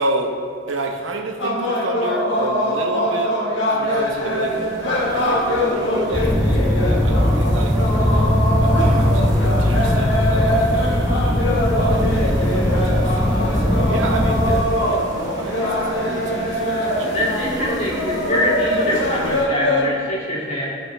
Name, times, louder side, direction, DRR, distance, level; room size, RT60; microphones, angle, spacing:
voice 1, 0.0-17.2, right 2 dB, 75° right, 3 dB, 0.9 m, -29 dB
sound 1, 1.4-19.9, equal, 65° left, 1.6 m, -23 dB
sound 2, 3.8-19.5, right 1 dB, 20° right, 1.3 m, -34 dB
sound 3, 6.1-14.6, left 1 dB, 10° left, 0.9 m, -19 dB
voice 2, 17.1-20.7, left 1 dB, 35° left, -6 dB, 2.4 m, -23 dB
15.0 x 5.2 x 3.4 m, 2.2 s
head